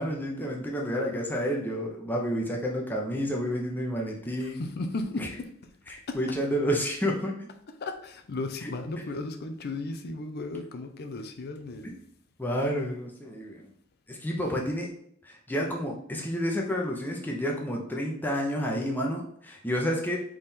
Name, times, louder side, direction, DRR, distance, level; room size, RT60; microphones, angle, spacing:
voice 1, 0.0-4.6 5.2-5.3 5.9-7.5 8.6-8.7 11.8-11.9 12.4-13.7 14.1-14.9 15.2-20.2, equal, 10° left, -1 dB, 0.7 m, -30 dB
voice 2, 4.4-5.5 5.9-6.2 7.8-11.9, left 2 dB, 50° left, 7 dB, 0.6 m, -35 dB
3.7 x 3.3 x 4.2 m, 0.66 s
head